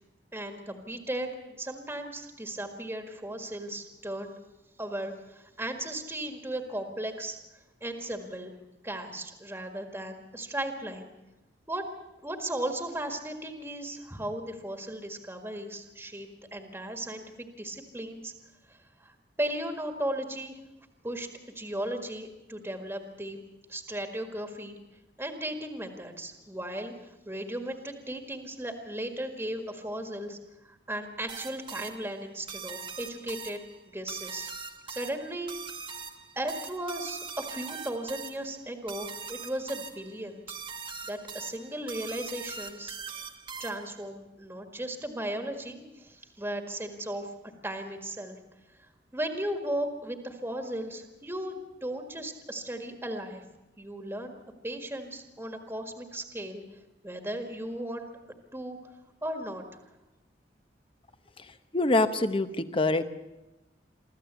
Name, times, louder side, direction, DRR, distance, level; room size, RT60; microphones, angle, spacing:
voice 1, 0.3-4.3 4.8-7.4 7.8-8.5 8.8-11.1 11.7-11.8 12.2-18.3 18.7-20.6 21.0-21.3 21.6-23.4 23.7-24.8 25.2-30.4 30.9-33.6 33.9-34.5 34.9-35.5 36.4-40.6 41.0-43.2 43.6-47.3 47.6-48.4 49.1-53.4 53.8-54.4 54.6-56.6 57.0-58.1 58.5-58.8 59.2-59.6, right 1 dB, 15° right, 5 dB, 1.8 m, -36 dB
sound 1, 31.3-44.0, right 5 dB, 30° right, 1.1 m, -42 dB
voice 2, 61.7-63.2, left 2 dB, 30° left, 11 dB, 1.0 m, -25 dB
24.5 x 14.5 x 8.2 m, 0.99 s
head